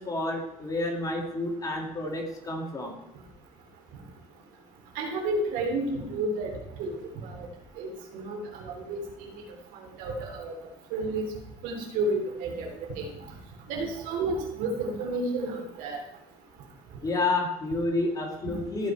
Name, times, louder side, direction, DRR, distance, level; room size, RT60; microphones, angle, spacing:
voice 1, 0.0-2.9 17.0-18.9, left 2 dB, 25° left, 1 dB, 2.5 m, -29 dB
voice 2, 4.9-6.5 6.8-7.0 7.2-7.5 7.8-9.0 10.0-10.5 10.9-11.2 11.6-12.7 12.9-13.0 13.7-16.0, right 2 dB, 75° right, 1 dB, 3.3 m, -31 dB
15.0 x 5.6 x 4.6 m, 0.83 s
cardioid pair, 110°, 15 cm